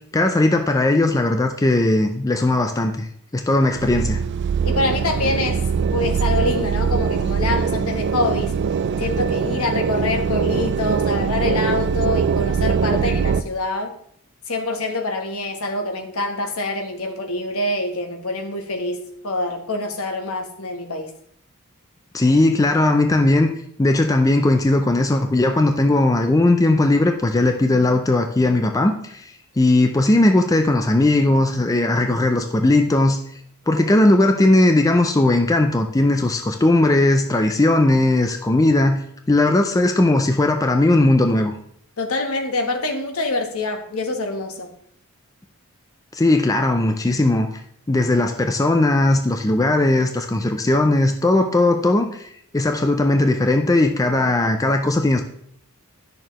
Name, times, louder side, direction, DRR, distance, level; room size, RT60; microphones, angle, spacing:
voice 1, 0.1-3.1 3.3-4.2 22.1-23.5 23.8-33.2 33.7-41.5 46.1-47.5 47.9-55.2, left 2 dB, 15° left, 5 dB, 0.4 m, -18 dB
sound 1, 3.7-13.4, right 6 dB, 50° right, 0.3 m, -22 dB
voice 2, 4.6-5.6 5.9-8.6 9.0-13.9 14.5-21.1 42.0-44.7, left 2 dB, 65° left, 5 dB, 1.2 m, -25 dB
10.5 x 6.5 x 3.0 m, 0.68 s
head